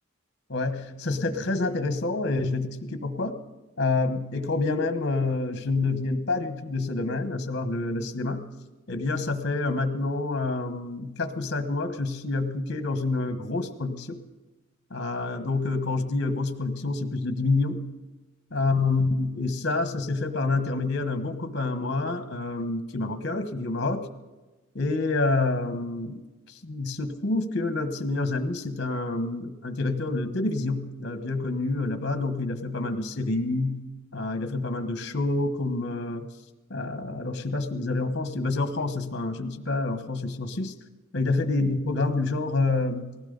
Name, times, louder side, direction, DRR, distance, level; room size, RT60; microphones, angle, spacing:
voice 1, 0.5-3.4 3.8-8.5 8.9-14.2 14.9-18.0 18.5-24.1 24.7-36.3 36.7-40.7 41.1-43.2, left 3 dB, 60° left, 9 dB, 1.3 m, -28 dB
19.5 x 16.5 x 4.0 m, 1.1 s
head